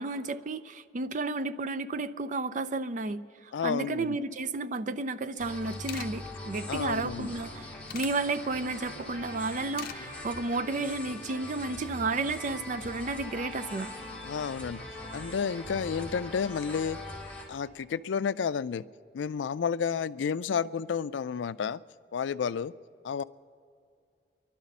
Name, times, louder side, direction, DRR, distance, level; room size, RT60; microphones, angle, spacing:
voice 1, 0.0-3.2 3.6-13.9, right 3 dB, 45° right, 11 dB, 0.5 m, -32 dB
voice 2, 3.5-4.2 6.7-7.3 14.3-14.8 15.1-17.0 17.5-18.8 19.1-21.8 22.1-22.7 23.0-23.2, left 6 dB, 85° left, 16 dB, 0.4 m, -31 dB
sound 1, 5.4-5.5 5.6-6.1 7.3-8.1 9.5-10.0 10.4-10.6, left 8 dB, 55° left, 0.7 m, -41 dB
sound 2, 5.4-17.5, left 1 dB, 10° left, 2.5 m, -41 dB
30.0 x 11.5 x 4.2 m, 2.4 s
head